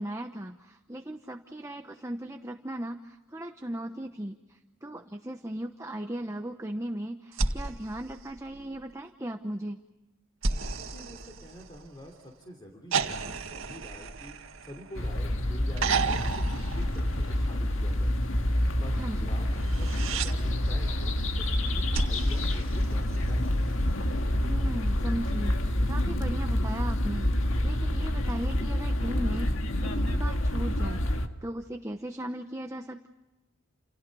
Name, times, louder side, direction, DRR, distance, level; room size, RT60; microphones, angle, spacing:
voice 1, 0.0-9.8 19.0-19.3 24.4-33.1, right 1 dB, 15° right, 5 dB, 0.9 m, -37 dB
sound 1, 7.3-8.9 10.4-12.1 12.9-15.2 15.8-17.6 19.6-20.3 21.9-23.4 24.9-25.0, right 4 dB, 75° right, 2.0 m, -33 dB
voice 2, 10.7-14.4 14.6-18.1 18.8-19.5 19.8-21.1 21.4-23.5, equal, 20° left, 2 dB, 3.4 m, -46 dB
sound 2, 14.9-31.3, left 1 dB, 70° left, 2.0 m, -27 dB
29.5 x 29.5 x 5.5 m, 1.1 s
head